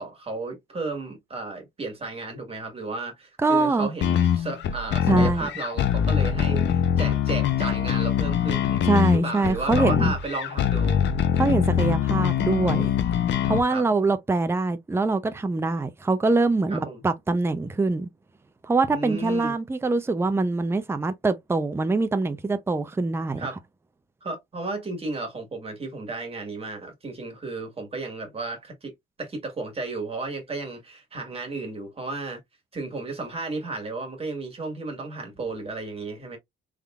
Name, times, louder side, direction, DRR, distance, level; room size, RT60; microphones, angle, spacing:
voice 1, 0.0-11.0 13.7-13.8 16.7-17.0 18.9-19.5 23.4-23.6 24.2-28.9 29.2-32.4 32.7-36.4, right 3 dB, 30° right, 1.6 m, -33 dB
voice 2, 3.4-3.9 5.1-5.5 8.9-10.1 11.4-12.9 13.5-18.1 18.6-23.5, right 3 dB, 10° right, 0.5 m, -24 dB
sound 1, 4.0-13.6, left 9 dB, 65° left, 0.6 m, -23 dB
3.6 x 3.4 x 2.4 m
cardioid pair, 90°, 20 cm